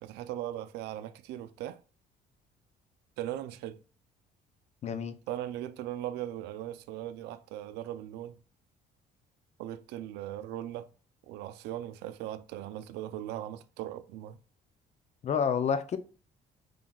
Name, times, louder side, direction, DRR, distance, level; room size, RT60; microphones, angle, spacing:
voice 1, 0.0-1.8 3.2-3.8 5.3-8.4 9.6-10.9 11.3-14.4, right 12 dB, 85° right, 0.5 m, -39 dB
voice 2, 4.8-5.1 15.2-16.0, left 7 dB, 40° left, 0.6 m, -28 dB
5.4 x 3.3 x 2.3 m
cardioid pair, 110°, 17 cm